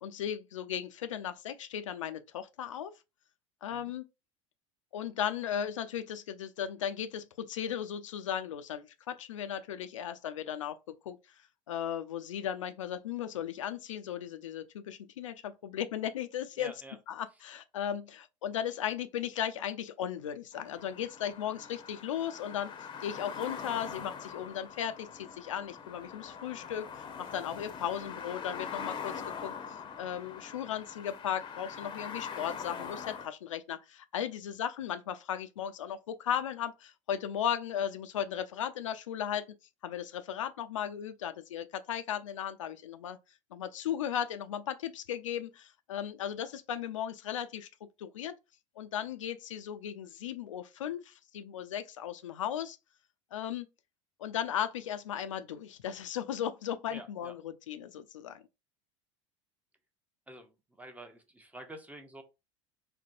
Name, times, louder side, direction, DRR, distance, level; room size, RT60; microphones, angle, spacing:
voice 1, 0.0-2.9 3.6-4.1 4.9-11.2 11.7-16.7 17.1-22.7 23.0-39.5 39.8-43.2 43.5-47.7 48.0-48.4 48.8-52.8 53.3-53.7 54.2-58.4, left 9 dB, 70° left, 0.4 m, -36 dB
voice 2, 16.6-17.0 56.9-57.3 60.3-62.2, right 1 dB, 10° right, 0.6 m, -48 dB
sound 1, 20.5-33.3, left 6 dB, 30° left, 0.6 m, -43 dB
4.2 x 2.1 x 2.5 m
figure-of-eight pair, 75°, 17 cm